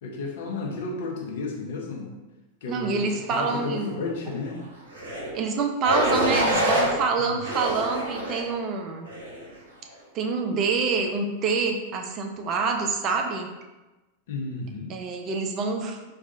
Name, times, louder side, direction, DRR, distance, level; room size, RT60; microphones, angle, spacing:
voice 1, 0.0-2.1 2.6-4.6 7.3-7.4 14.3-15.0, left 3 dB, 55° left, -1 dB, 0.7 m, -33 dB
voice 2, 2.7-4.2 5.3-9.1 10.1-13.5 14.9-16.1, right 4 dB, 35° right, 2 dB, 0.4 m, -27 dB
sound 1, 4.9-5.3 5.8-6.9 7.4-8.5 9.1-9.4, equal, 65° right, 0.9 m, -25 dB
4.6 x 2.4 x 2.7 m, 1.1 s
figure-of-eight pair, 90°, 0 cm